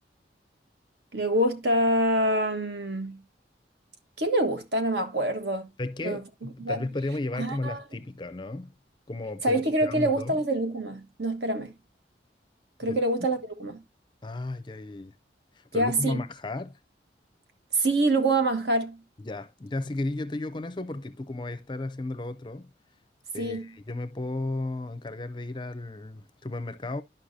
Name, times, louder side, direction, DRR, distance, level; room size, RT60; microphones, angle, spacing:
voice 1, 1.1-3.2 4.2-5.7 6.0-6.2 6.6-6.8 7.4-7.8 9.4-11.7 12.8-13.8 15.7-16.2 17.7-19.0 23.4-23.7, right 1 dB, 70° right, 1.4 m, -26 dB
voice 2, 5.8-8.7 9.1-10.4 12.9-13.0 14.2-15.1 15.5-16.7 19.2-22.7 23.3-27.0, left 2 dB, 25° left, 0.5 m, -34 dB
11.5 x 5.4 x 2.6 m
head